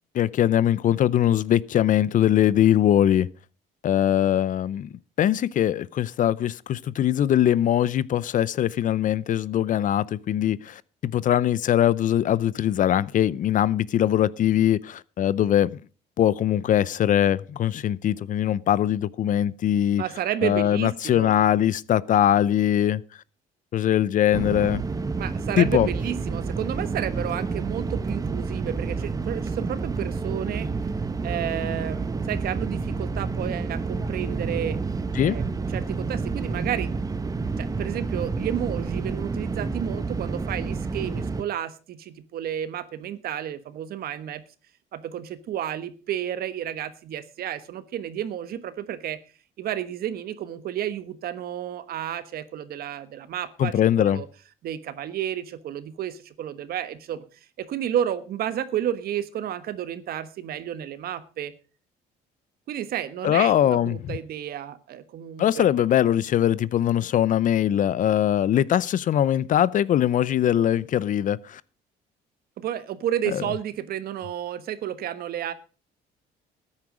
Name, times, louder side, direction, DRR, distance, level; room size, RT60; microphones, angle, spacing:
voice 1, 0.1-3.3 3.8-4.9 5.2-15.8 16.2-20.0 20.4-23.0 23.7-24.8 25.6-25.9 35.1-35.4 53.6-54.2 63.2-64.2 65.4-71.6 73.3-73.4, left 11 dB, 50° left, 0.6 m, -21 dB
voice 2, 20.0-21.5 25.2-30.7 31.2-34.8 35.2-35.5 35.7-37.3 37.6-44.4 44.9-49.2 49.6-54.3 54.6-57.2 57.6-61.5 62.7-65.7 72.6-75.5, right 10 dB, 65° right, 1.3 m, -31 dB
sound 1, 24.3-41.4, right 4 dB, 20° right, 0.8 m, -29 dB
13.5 x 9.7 x 5.0 m
cardioid pair, 110°, 17 cm